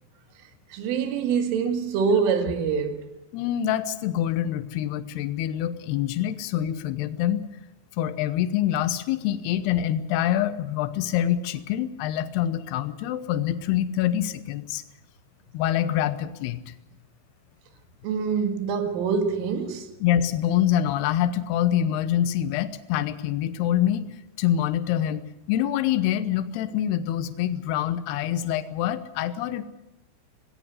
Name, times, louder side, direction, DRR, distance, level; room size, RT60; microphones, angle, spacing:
voice 1, 0.7-3.1 18.0-19.9, right 6 dB, 85° right, 4.4 m, -25 dB
voice 2, 3.3-7.4 8.0-14.8 15.5-16.7 20.0-24.0 24.4-29.6, left 11 dB, 75° left, 2.6 m, -25 dB
18.5 x 17.5 x 8.1 m
omnidirectional pair, 5.6 m